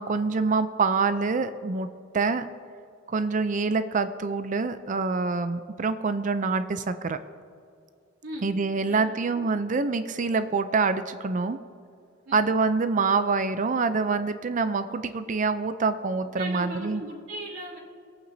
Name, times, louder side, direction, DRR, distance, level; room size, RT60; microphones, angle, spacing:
voice 1, 0.0-1.9 2.1-2.5 3.1-7.2 8.4-11.6 12.3-17.0, right 4 dB, 40° right, 11 dB, 0.5 m, -26 dB
voice 2, 8.2-9.5 12.2-12.5 16.4-17.8, right 1 dB, 90° right, -7 dB, 2.8 m, -39 dB
23.0 x 8.9 x 2.7 m, 2.4 s
head